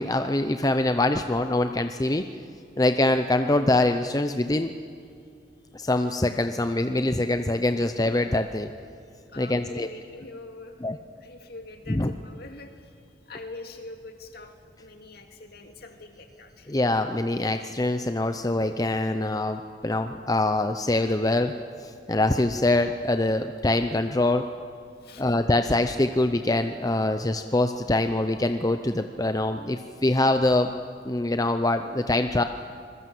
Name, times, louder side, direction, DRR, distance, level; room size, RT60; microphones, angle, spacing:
voice 1, 0.0-2.2 2.8-4.7 5.7-8.7 9.4-9.9 10.8-11.0 11.9-12.1 16.7-21.5 21.8-24.4 25.2-30.7 31.0-32.4, left 2 dB, 20° left, 8 dB, 0.7 m, -24 dB
voice 2, 9.2-10.9 11.2-16.7 24.9-25.4, left 2 dB, 55° left, 5 dB, 2.4 m, -44 dB
26.5 x 21.5 x 7.9 m, 2.3 s
head